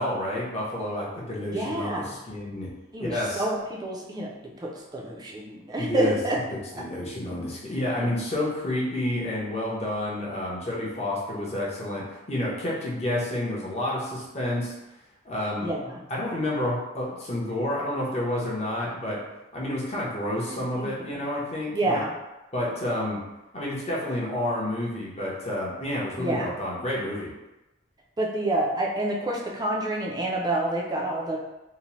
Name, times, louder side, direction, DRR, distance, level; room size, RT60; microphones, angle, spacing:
voice 1, 0.0-2.7 3.0-3.4 5.8-6.2 6.5-14.7 15.2-15.7 16.1-19.2 19.5-22.0 22.5-23.2 23.5-27.3, left 1 dB, 35° left, -5 dB, 0.7 m, -29 dB
voice 2, 1.5-2.2 2.9-6.4 8.0-8.1 15.6-16.0 20.5-20.9 21.7-22.1 26.2-26.6 28.2-31.4, right 1 dB, 20° right, -2 dB, 0.4 m, -28 dB
2.8 x 2.0 x 2.9 m, 0.99 s
head